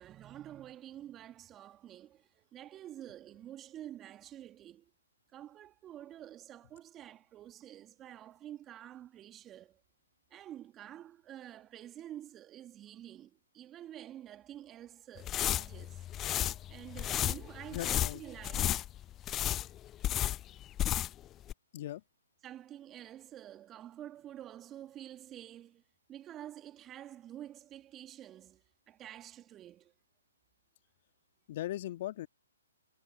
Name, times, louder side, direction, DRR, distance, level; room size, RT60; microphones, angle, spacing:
voice 1, 0.0-4.9 5.3-9.8 10.3-16.1 16.7-18.8 22.4-25.8 26.1-29.9, right 12 dB, 20° right, 2.7 m, -49 dB
sound 1, 15.2-21.2 21.5-21.6, left 12 dB, 20° left, 0.3 m, -33 dB
voice 2, 17.7-18.2 21.7-22.0 31.5-32.3, left 14 dB, 45° left, 1.8 m, -38 dB
figure-of-eight pair, 130°, 0 cm